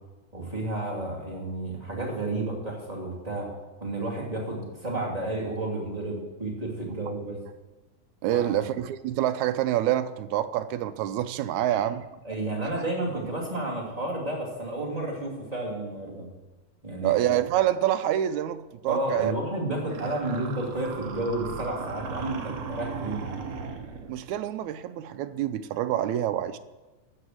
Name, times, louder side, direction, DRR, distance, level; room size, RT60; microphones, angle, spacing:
voice 1, 0.3-3.5 3.8-7.4 8.3-8.6 11.5-11.8 12.2-16.3 16.8-17.1 18.9-23.4, right 2 dB, 15° right, -4 dB, 2.4 m, -31 dB
voice 2, 8.2-12.1 17.0-19.3 24.1-26.6, right 12 dB, 80° right, 11 dB, 1.9 m, -27 dB
sound 1, 19.9-24.2, right 5 dB, 60° right, 2.1 m, -37 dB
13.5 x 6.5 x 7.9 m, 1.1 s
omnidirectional pair, 3.5 m